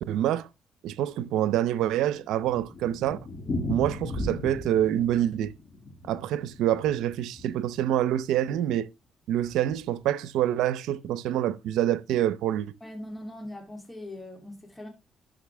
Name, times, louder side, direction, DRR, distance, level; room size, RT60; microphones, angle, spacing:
voice 1, 0.1-0.5 0.8-3.2 3.7-5.5 6.1-8.9 9.3-12.7, right 12 dB, 90° right, 0.6 m, -26 dB
Thunder, 1.9-8.1 8.5-8.6 8.8-8.9 9.5-9.8, left 1 dB, 40° left, 4.5 m, -36 dB
voice 2, 12.8-14.9, left 1 dB, 10° left, 2.8 m, -41 dB
12.0 x 5.6 x 3.4 m
cardioid pair, 90°, 0 cm